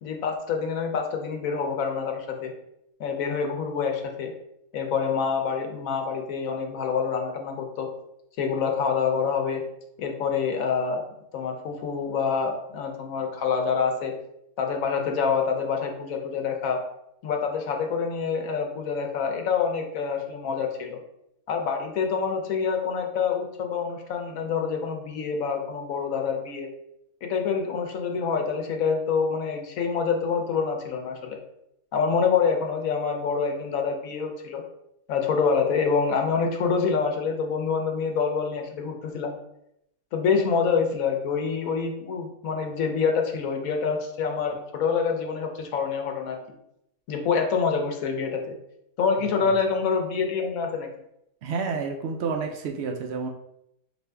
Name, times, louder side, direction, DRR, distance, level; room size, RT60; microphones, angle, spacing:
voice 1, 0.0-2.5 3.0-4.3 4.7-7.9 8.4-9.6 10.0-11.0 11.3-14.1 14.6-16.8 17.2-21.0 21.5-26.7 27.2-31.4 31.9-34.6 35.1-39.4 40.1-46.4 47.1-48.6 49.0-50.9, left 5 dB, 75° left, 3 dB, 1.1 m, -26 dB
voice 2, 51.4-53.3, right 5 dB, 65° right, 3 dB, 0.7 m, -30 dB
4.2 x 2.6 x 3.3 m, 0.79 s
omnidirectional pair, 1.5 m